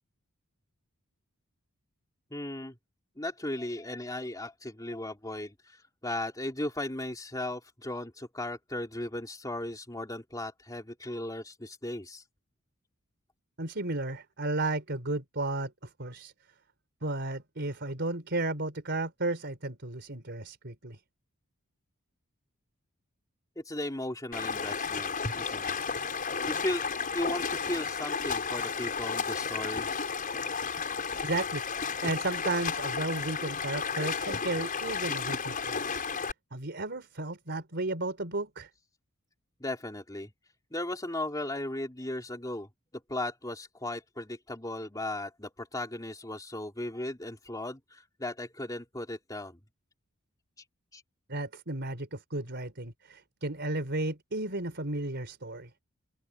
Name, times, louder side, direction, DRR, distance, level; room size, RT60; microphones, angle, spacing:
voice 1, 2.3-2.7 3.2-12.2 23.6-25.8 26.5-26.8 27.1-29.9 39.6-40.3 40.7-42.7 43.1-49.6 50.9-51.0, left 1 dB, 15° left, 3.5 m, -36 dB
voice 2, 13.6-16.3 17.0-21.0 31.2-31.7 32.0-35.9 36.5-38.7 51.3-55.7, right 2 dB, 55° right, 4.0 m, -33 dB
Stream, 24.3-36.3, left 5 dB, 40° left, 5.4 m, -33 dB
open air
head